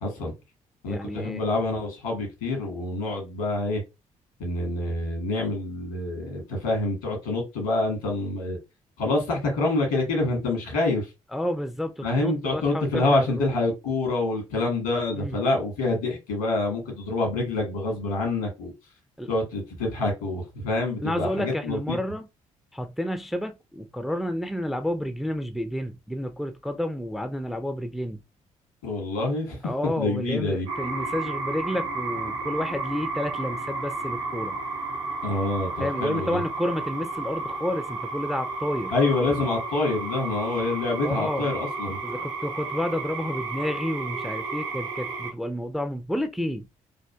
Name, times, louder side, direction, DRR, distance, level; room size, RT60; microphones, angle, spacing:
voice 1, 0.0-0.3 0.8-3.8 4.4-8.6 9.0-11.1 12.0-18.7 19.3-22.0 28.8-29.6 30.0-30.7 35.2-36.4 38.9-42.0, left 2 dB, 75° left, 1.5 m, -26 dB
voice 2, 0.9-1.4 11.3-13.6 15.1-15.4 19.2-19.3 21.0-22.3 22.7-28.2 29.6-34.6 35.8-38.9 41.0-41.5 42.0-46.7, left 1 dB, ahead, 0.3 m, -30 dB
sound 1, 30.7-45.3, right 3 dB, 70° right, 0.6 m, -32 dB
3.3 x 2.4 x 2.2 m
figure-of-eight pair, 45°, 17 cm